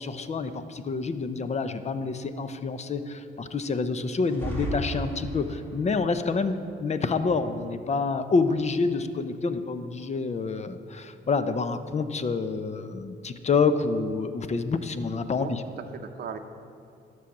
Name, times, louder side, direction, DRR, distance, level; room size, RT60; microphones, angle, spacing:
voice 1, 0.0-15.6, left 4 dB, 35° left, 11 dB, 0.7 m, -28 dB
sound 1, 4.2-5.8, right 1 dB, 10° left, 2.6 m, -34 dB
voice 2, 15.4-16.4, right 7 dB, 50° right, 5 dB, 0.7 m, -38 dB
11.5 x 6.3 x 7.2 m, 2.6 s
cardioid pair, 90°, 20 cm